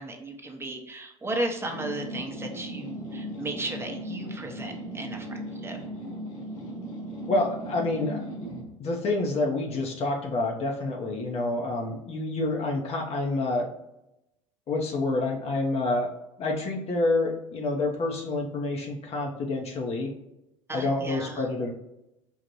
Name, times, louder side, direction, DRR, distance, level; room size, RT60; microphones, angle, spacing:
voice 1, 0.0-5.8 20.7-21.4, right 1 dB, 15° right, 3 dB, 0.9 m, -35 dB
sound 1, 1.7-8.7, equal, 85° left, 1.0 m, -37 dB
voice 2, 7.3-8.3 8.8-13.7 14.7-16.1 16.4-20.1 20.7-21.7, left 2 dB, 40° left, 0 dB, 0.9 m, -28 dB
5.5 x 2.5 x 3.0 m, 0.88 s
hypercardioid pair, 75°, 17 cm